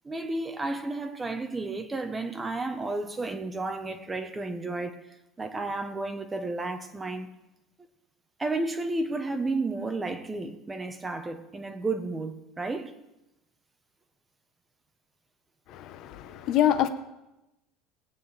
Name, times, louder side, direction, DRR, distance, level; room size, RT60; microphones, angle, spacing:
voice 1, 0.0-5.0 5.4-7.3 8.4-12.9, right 2 dB, 15° right, 0.8 m, -32 dB
voice 2, 15.7-16.9, left 11 dB, 50° left, 0.7 m, -25 dB
19.0 x 9.0 x 3.2 m
cardioid pair, 145°, 0 cm